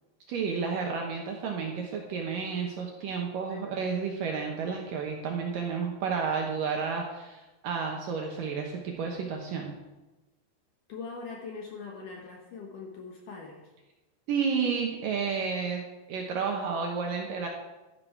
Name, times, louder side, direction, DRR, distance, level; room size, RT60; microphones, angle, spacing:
voice 1, 0.3-9.7 14.3-17.5, right 5 dB, 70° right, 1 dB, 2.2 m, -31 dB
voice 2, 3.5-3.8 10.9-13.6, left 4 dB, 65° left, 0 dB, 2.2 m, -42 dB
12.5 x 10.5 x 4.6 m, 1.1 s
omnidirectional pair, 5.1 m